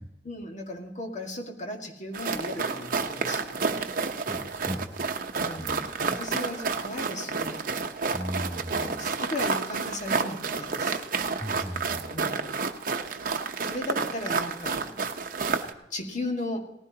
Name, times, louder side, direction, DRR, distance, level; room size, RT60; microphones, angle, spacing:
voice 1, 0.2-3.8 5.3-7.7 8.7-11.0 12.1-12.6 13.6-14.9 15.9-16.7, left 1 dB, 45° left, 2 dB, 1.8 m, -36 dB
sound 1, 2.1-15.7, right 4 dB, 50° right, 0.9 m, -30 dB
voice 2, 4.2-4.9 5.6-5.9 8.1-9.1 11.4-12.3 13.5-13.7, equal, 10° right, 3 dB, 0.7 m, -37 dB
18.5 x 15.5 x 2.9 m, 0.95 s
head